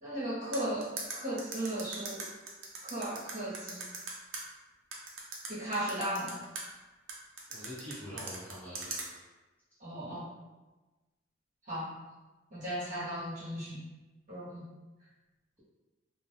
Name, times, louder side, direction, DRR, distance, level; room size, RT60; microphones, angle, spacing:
voice 1, 0.0-2.2 2.8-3.8 5.5-6.4 9.8-10.3 11.7-11.9 12.5-13.8 14.3-14.7, right 1 dB, 40° right, -10 dB, 1.2 m, -36 dB
sound 1, 0.5-4.4 4.9-6.6 7.1-9.0, right 4 dB, 85° right, 0.7 m, -39 dB
voice 2, 7.5-9.1, equal, 10° left, -12 dB, 1.1 m, -45 dB
2.5 x 2.3 x 3.4 m, 1.2 s
head